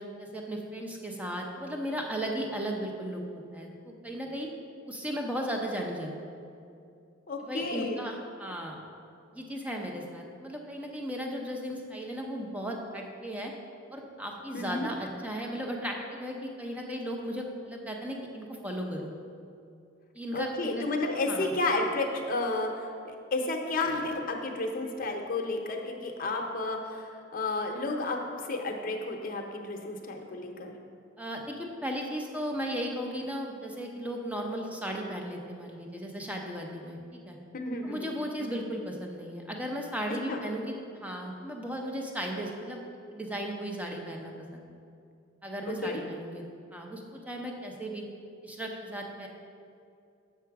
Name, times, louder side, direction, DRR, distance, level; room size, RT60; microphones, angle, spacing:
voice 1, 0.0-4.5 4.9-6.4 7.5-8.8 9.3-13.5 13.9-19.1 20.1-20.8 21.3-21.5 31.2-37.4 37.8-42.8 43.1-44.7 45.4-46.4 46.7-48.0 48.4-49.3, equal, 5° right, 1 dB, 0.7 m, -36 dB
voice 2, 7.3-8.0 14.5-14.9 20.3-28.2 28.5-30.7 37.5-38.1 38.4-38.6 40.1-40.4 45.7-46.0, left 2 dB, 45° left, 2 dB, 0.8 m, -32 dB
6.9 x 5.9 x 4.7 m, 2.5 s
head